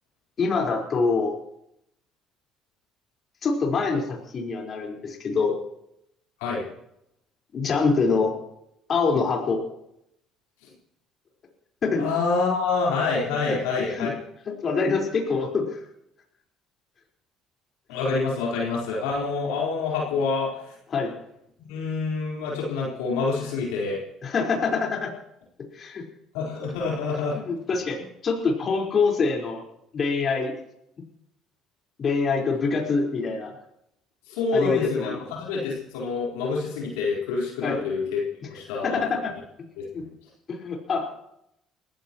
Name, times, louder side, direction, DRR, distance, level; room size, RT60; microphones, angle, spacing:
voice 1, 0.4-1.4 3.4-5.6 7.5-8.3 8.9-9.6 11.8-12.1 13.5-13.6 13.9-14.1 14.5-15.8 20.9-21.1 24.2-25.1 25.7-26.0 27.3-29.6 29.9-30.5 32.0-33.6 34.5-35.2 37.6-37.8 38.8-39.3 39.9-40.0 40.5-41.2, left 4 dB, 45° left, 0 dB, 4.6 m, -25 dB
voice 2, 12.0-14.1 17.9-20.5 21.6-24.0 26.3-27.4 34.3-38.2 38.5-39.0 39.8-40.1, left 4 dB, 80° left, -3 dB, 4.3 m, -27 dB
30.0 x 15.5 x 3.1 m, 0.79 s
hypercardioid pair, 60°, 0 cm